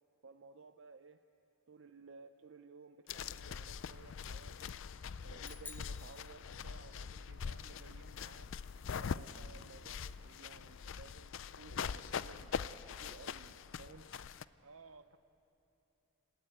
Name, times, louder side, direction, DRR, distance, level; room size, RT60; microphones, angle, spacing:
voice 1, 0.2-1.2 1.7-4.7 5.2-8.5 9.0-14.1, right 4 dB, 60° right, 8 dB, 0.5 m, -57 dB
sound 1, 3.1-14.4, left 6 dB, 60° left, 0.4 m, -43 dB
sound 2, 5.4-7.1, left 4 dB, 10° left, 0.6 m, -53 dB
voice 2, 12.1-12.6 14.6-15.2, right 4 dB, 75° right, 11 dB, 0.9 m, -58 dB
26.5 x 13.0 x 9.1 m, 2.9 s
head